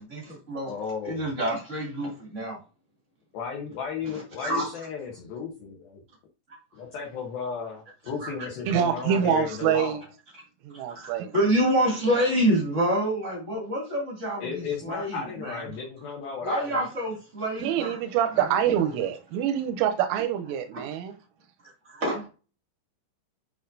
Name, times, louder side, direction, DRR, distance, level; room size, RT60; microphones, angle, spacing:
voice 1, 0.0-0.7 1.0-2.6 4.4-4.7 8.2-8.3 10.7-15.6 16.4-18.0 18.4-18.6 18.8-18.9 20.7-20.8 21.8-22.2, right 1 dB, 45° right, 0.9 m, -27 dB
voice 2, 0.7-1.3 3.3-6.0 6.7-10.0 14.4-16.9, left 6 dB, 75° left, 2.2 m, -34 dB
voice 3, 8.7-10.0 10.6-11.3 17.6-21.2, right 9 dB, 85° right, 3.2 m, -25 dB
8.5 x 4.9 x 2.6 m
omnidirectional pair, 5.7 m